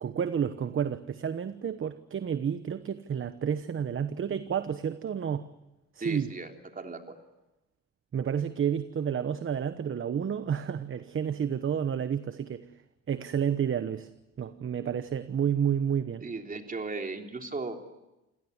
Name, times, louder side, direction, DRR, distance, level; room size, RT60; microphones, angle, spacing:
voice 1, 0.0-5.4 5.9-6.3 8.1-12.7 13.1-14.1 14.4-16.2, right 8 dB, 45° right, 12 dB, 1.1 m, -30 dB
voice 2, 6.0-7.2 16.2-17.8, right 3 dB, 30° right, 4 dB, 3.4 m, -36 dB
28.5 x 17.0 x 9.5 m, 0.98 s
cardioid pair, 90°, 30 cm